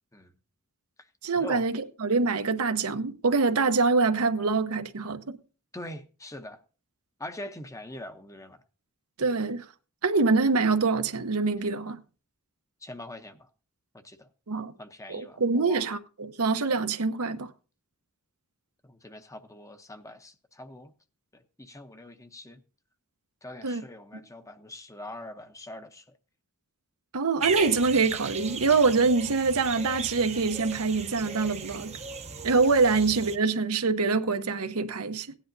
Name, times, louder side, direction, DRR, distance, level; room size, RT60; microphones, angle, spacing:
voice 1, 1.2-5.4 9.2-9.6 10.0-12.0 14.5-14.7 15.1-17.5 23.6-23.8 27.1-32.0 32.4-35.3, right 4 dB, 75° right, 0.9 m, -25 dB
voice 2, 5.7-6.6 7.2-8.6 12.8-13.5 14.0-14.3 14.8-15.9 18.8-20.9 21.3-22.6 23.4-26.0, left 1 dB, 15° left, 0.8 m, -43 dB
sound 1, 27.4-33.4, right 6 dB, 30° right, 0.7 m, -36 dB
17.0 x 10.0 x 2.7 m
head